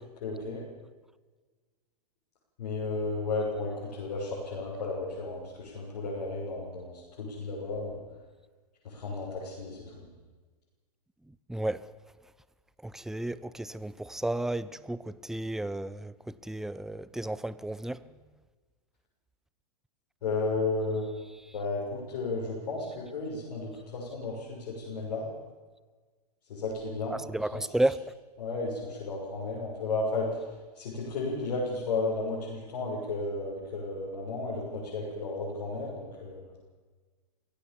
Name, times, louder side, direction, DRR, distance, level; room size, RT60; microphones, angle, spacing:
voice 1, 0.2-0.6 2.6-8.0 8.8-10.1 20.2-21.2 21.5-25.3 26.5-27.2 27.5-27.6 28.4-30.5 30.7-36.4, left 3 dB, 60° left, 7.0 m, -33 dB
voice 2, 11.3-11.9 12.8-18.1 21.4-21.5 27.1-28.1, right 1 dB, ahead, 0.6 m, -33 dB
23.5 x 16.5 x 7.2 m
hypercardioid pair, 110°, 21 cm